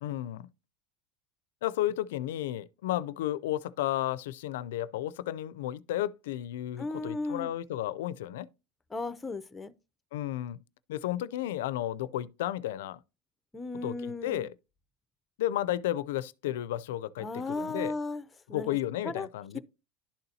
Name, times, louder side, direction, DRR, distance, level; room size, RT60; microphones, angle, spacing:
voice 1, 0.0-0.5 1.6-8.5 10.1-10.6 10.9-13.0 13.8-14.5 15.4-17.9 18.5-19.6, left 13 dB, 90° left, 0.4 m, -33 dB
voice 2, 6.8-7.5 8.9-9.7 13.5-14.5 17.2-18.2 18.5-18.8 19.0-19.3 19.5-19.6, left 2 dB, 15° left, 0.6 m, -35 dB
11.5 x 4.0 x 2.7 m
supercardioid pair, 125°, 0 cm